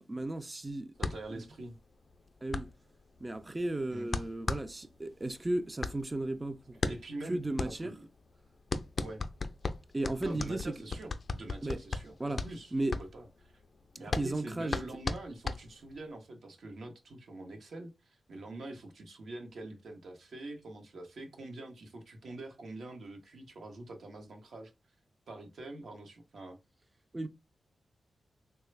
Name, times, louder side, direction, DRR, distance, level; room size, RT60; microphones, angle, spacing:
voice 1, 0.0-0.9 1.3-1.4 2.4-2.7 3.2-6.8 7.3-7.9 9.9-10.8 11.6-11.8 12.2-12.4 12.7-13.0 14.2-14.8 27.1-27.3, right 2 dB, 25° right, 0.3 m, -35 dB
sound 1, 1.0-16.1, left 3 dB, 55° left, 0.4 m, -37 dB
voice 2, 1.0-1.8 3.9-4.1 6.9-8.1 9.0-9.2 10.2-13.5 14.0-24.7 25.3-26.6, right 2 dB, 75° right, 0.8 m, -45 dB
3.2 x 2.2 x 3.2 m
cardioid pair, 60°, 0 cm